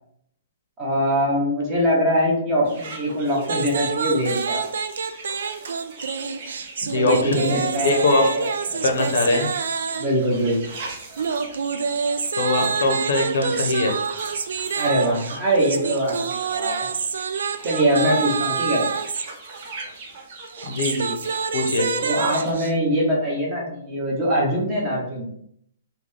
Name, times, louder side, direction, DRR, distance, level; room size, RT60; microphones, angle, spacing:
voice 1, 0.8-4.6 6.9-8.3 8.7-9.0 10.0-10.7 14.7-16.9 17.6-18.8 22.0-25.3, equal, 20° right, -5 dB, 1.1 m, -23 dB
sound 1, 2.6-22.5, right 3 dB, 40° right, 0.7 m, -41 dB
sound 2, 3.4-10.2 11.2-19.3 20.5-22.7, right 5 dB, 80° right, 0.3 m, -27 dB
voice 2, 6.8-8.2 8.8-9.5 12.3-14.0 20.6-21.1 21.5-21.9, left 2 dB, 70° left, 4 dB, 0.7 m, -22 dB
3.7 x 2.2 x 3.3 m, 0.68 s
hypercardioid pair, 170°, 0 cm